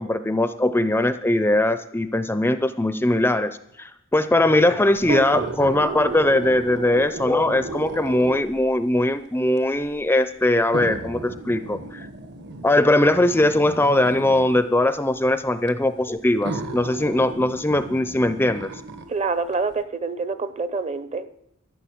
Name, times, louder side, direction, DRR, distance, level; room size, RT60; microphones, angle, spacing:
voice 1, 0.0-12.1 12.6-18.7, left 1 dB, 10° left, 11 dB, 0.5 m, -20 dB
sound 1, 5.0-8.7 9.6-9.7 10.7-14.7 15.7-15.8 16.4-19.1 19.5-19.6, right 3 dB, 55° right, 1.1 m, -34 dB
voice 2, 19.1-21.3, right 4 dB, 30° right, 13 dB, 0.7 m, -26 dB
13.5 x 6.8 x 8.6 m, 0.82 s
head